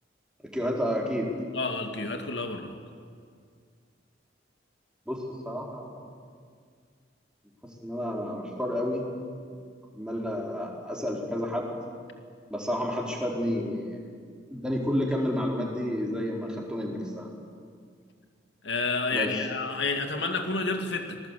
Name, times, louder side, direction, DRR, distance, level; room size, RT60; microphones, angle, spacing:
voice 1, 0.4-1.3 5.1-6.0 7.8-9.0 9.5-9.6 9.9-11.7 12.5-14.0 14.5-17.3 19.1-19.3, equal, 5° right, -2 dB, 4.4 m, -30 dB
voice 2, 1.5-2.8 18.6-21.2, left 3 dB, 80° left, 5 dB, 2.5 m, -30 dB
27.0 x 21.0 x 8.5 m, 2.1 s
head